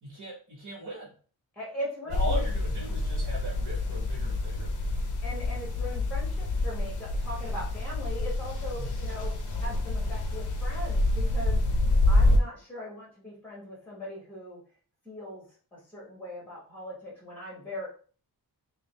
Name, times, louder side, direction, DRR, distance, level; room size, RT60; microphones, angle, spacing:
voice 1, 0.0-1.1 2.1-4.7 8.8-8.9 12.2-12.3, right 1 dB, 45° right, -3 dB, 1.3 m, -38 dB
voice 2, 1.5-2.4 5.2-9.3 9.6-11.6 12.1-14.6 15.0-15.4 15.7-17.9, left 1 dB, 5° left, -4 dB, 1.3 m, -40 dB
sound 1, 2.1-12.4, left 2 dB, 50° left, 0.7 m, -27 dB
5.1 x 2.2 x 3.2 m, 0.41 s
wide cardioid pair, 170°, 40 cm